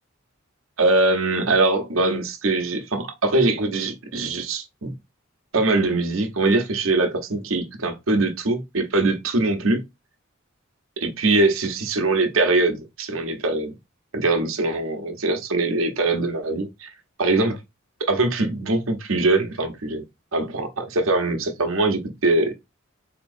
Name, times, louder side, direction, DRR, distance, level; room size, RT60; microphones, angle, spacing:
voice 1, 0.8-4.9 5.5-9.8 11.0-13.8 14.1-16.9 17.2-17.6 18.1-20.0 20.3-22.5, right 2 dB, 80° right, 1.0 m, -22 dB
4.4 x 2.9 x 2.6 m
head